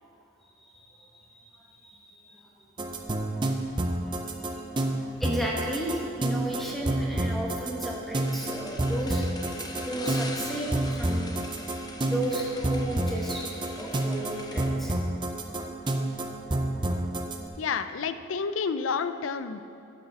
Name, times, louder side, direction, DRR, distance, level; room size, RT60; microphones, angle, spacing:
voice 1, 0.6-2.4 2.8-2.9 4.7-9.3 9.9-11.4 12.0-13.5 13.8-15.0, equal, ahead, -3 dB, 1.0 m, -34 dB
sound 1, 2.8-17.4, right 1 dB, 25° right, 0.5 m, -29 dB
sound 2, 8.2-14.7, left 2 dB, 20° left, 0.7 m, -42 dB
voice 2, 17.6-19.6, left 5 dB, 90° left, 11 dB, 0.5 m, -30 dB
9.7 x 6.4 x 6.9 m, 2.6 s
head